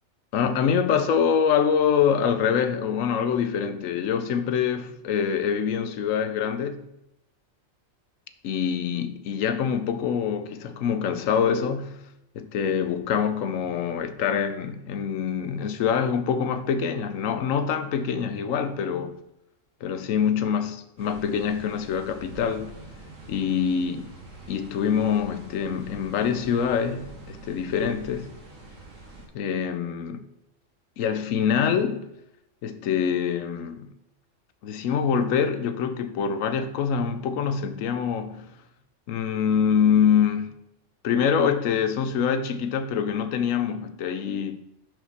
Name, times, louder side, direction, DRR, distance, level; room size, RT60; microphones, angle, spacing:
voice 1, 0.3-6.9 8.4-12.0 12.4-19.2 19.8-22.7 23.3-24.1 24.5-28.3 29.3-30.2 31.0-32.1 32.6-33.9 34.6-38.5 39.1-40.6 41.0-44.6, left 7 dB, 90° left, 1.0 m, -25 dB
sound 1, 21.0-29.3, right 2 dB, 65° right, 2.1 m, -45 dB
6.3 x 5.2 x 5.8 m
omnidirectional pair, 1.3 m